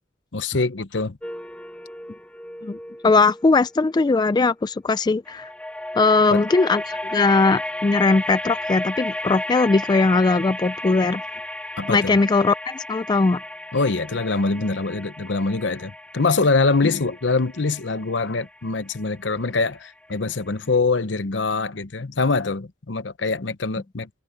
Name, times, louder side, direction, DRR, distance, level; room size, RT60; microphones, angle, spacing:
voice 1, 0.3-1.2 6.3-6.4 11.8-12.2 13.7-24.1, left 3 dB, 70° left, 0.9 m, -24 dB
sound 1, 1.2-4.5 5.3-20.1, left 1 dB, 5° left, 1.1 m, -34 dB
voice 2, 3.0-5.5 6.0-11.2 11.9-13.4, left 3 dB, 20° left, 0.3 m, -19 dB
head